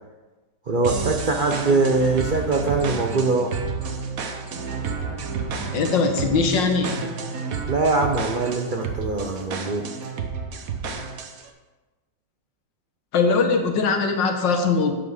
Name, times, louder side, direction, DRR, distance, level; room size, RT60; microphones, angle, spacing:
voice 1, 0.7-3.5 7.7-9.9, right 3 dB, 90° right, 2 dB, 0.4 m, -22 dB
sound 1, 0.8-11.5, right 5 dB, 55° right, 1.2 m, -30 dB
voice 2, 5.7-7.2 13.1-14.9, left 4 dB, 75° left, 4 dB, 1.8 m, -21 dB
9.2 x 7.2 x 4.9 m, 1.2 s
omnidirectional pair, 2.1 m